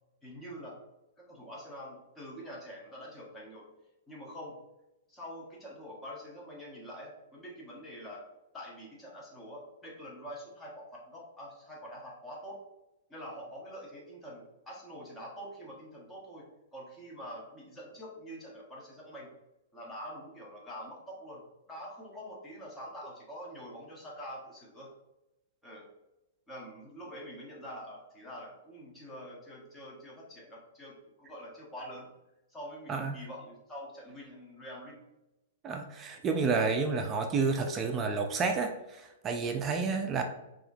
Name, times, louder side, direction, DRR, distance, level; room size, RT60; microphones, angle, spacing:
voice 1, 0.2-0.8 1.2-3.7 4.1-4.6 5.1-8.2 8.5-12.6 13.1-19.3 19.7-24.9 25.6-25.9 26.5-32.1 32.5-35.0, equal, 10° left, -4 dB, 1.1 m, -45 dB
voice 2, 35.6-40.2, right 4 dB, 20° right, 5 dB, 0.4 m, -30 dB
4.7 x 2.9 x 2.6 m, 0.95 s
hypercardioid pair, 145°, 0 cm